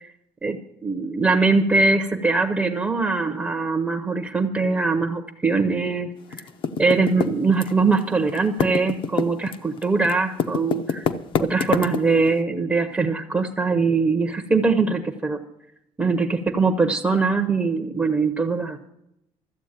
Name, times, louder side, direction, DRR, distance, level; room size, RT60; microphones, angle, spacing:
voice 1, 0.4-6.1 6.8-11.1 11.4-15.4 16.0-18.9, right 4 dB, 15° right, 5 dB, 0.7 m, -22 dB
Typing, 6.3-8.0 8.3-12.3, left 6 dB, 45° left, 0.7 m, -25 dB
14.0 x 8.1 x 8.8 m, 0.79 s
cardioid pair, 180°, 12 cm